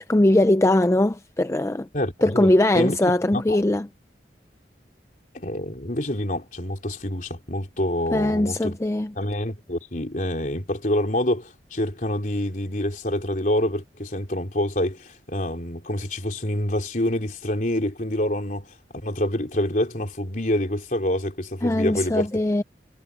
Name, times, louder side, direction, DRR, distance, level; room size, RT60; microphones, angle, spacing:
voice 1, 0.0-1.9 2.2-3.9 8.1-9.1 21.6-22.6, left 1 dB, 15° left, 0.4 m, -20 dB
voice 2, 1.9-3.6 5.3-8.8 9.2-22.4, left 1 dB, 45° left, 3.8 m, -27 dB
head